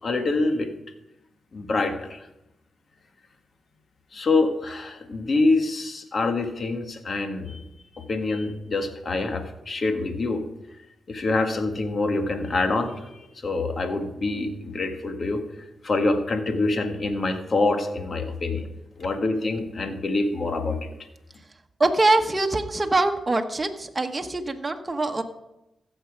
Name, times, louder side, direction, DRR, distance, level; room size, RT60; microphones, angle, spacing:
voice 1, 0.0-0.7 1.5-2.2 4.1-7.6 8.0-10.4 11.1-15.4 15.8-18.7 19.0-20.9, left 3 dB, 55° left, 5 dB, 1.8 m, -25 dB
voice 2, 21.8-25.2, right 2 dB, 30° right, 4 dB, 1.3 m, -23 dB
15.0 x 7.2 x 5.2 m, 0.91 s
cardioid pair, 55°, 0 cm